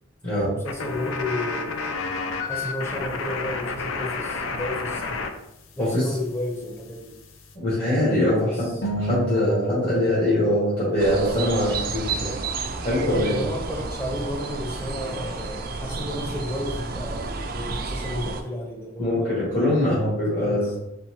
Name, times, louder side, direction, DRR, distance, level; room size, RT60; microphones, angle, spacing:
voice 1, 0.4-2.0 2.5-5.3 5.7-7.2 8.1-8.8 13.3-19.6 20.4-20.8, left 1 dB, 10° left, -1 dB, 0.8 m, -32 dB
sound 1, 0.7-5.3 5.6-7.5, left 4 dB, 80° left, 0.5 m, -31 dB
voice 2, 7.5-8.7 9.0-12.3 12.8-13.3 19.0-20.7, left 1 dB, 40° left, -10 dB, 1.6 m, -23 dB
sound 2, 8.8-11.4, right 1 dB, 60° left, 1.0 m, -32 dB
sound 3, 11.0-18.4, right 3 dB, 45° right, 0.4 m, -31 dB
4.3 x 3.6 x 3.0 m, 0.87 s
head